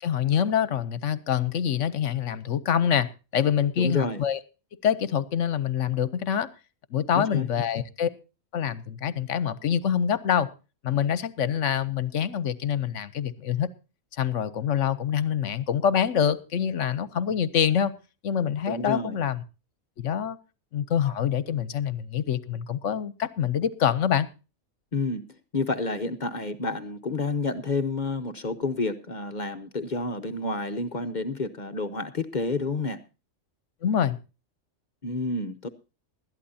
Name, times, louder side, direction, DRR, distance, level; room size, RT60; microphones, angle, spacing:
voice 1, 0.0-3.1 3.3-4.4 4.8-6.5 6.9-8.1 8.5-10.5 10.8-13.7 14.2-17.9 18.2-19.4 20.0-20.4 20.7-24.3 33.8-34.2, left 8 dB, 65° left, 1.1 m, -25 dB
voice 2, 3.8-4.2 7.1-7.5 18.7-19.2 24.9-33.0 35.0-35.7, left 3 dB, 40° left, 0.8 m, -29 dB
20.0 x 12.5 x 2.7 m
omnidirectional pair, 1.4 m